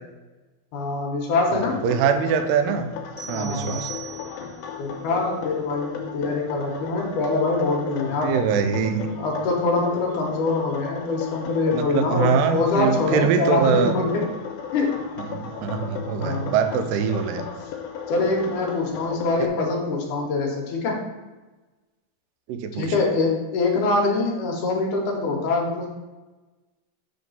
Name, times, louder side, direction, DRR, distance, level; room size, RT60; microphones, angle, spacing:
voice 1, 0.7-1.8 3.3-3.8 4.8-8.4 9.2-14.2 14.7-15.1 16.2-16.5 18.1-21.0 22.7-25.9, left 3 dB, 65° left, -1 dB, 2.3 m, -24 dB
sound 1, 1.3-19.5, left 7 dB, 85° left, 2.6 m, -35 dB
voice 2, 1.5-2.9 3.3-3.9 8.2-9.1 11.7-14.0 15.2-17.5 19.4-19.5 22.5-22.9, right 6 dB, 80° right, 8 dB, 2.1 m, -23 dB
sound 2, 3.2-4.7, right 8 dB, 15° left, 1.1 m, -38 dB
7.4 x 3.6 x 5.5 m, 1.2 s
omnidirectional pair, 4.2 m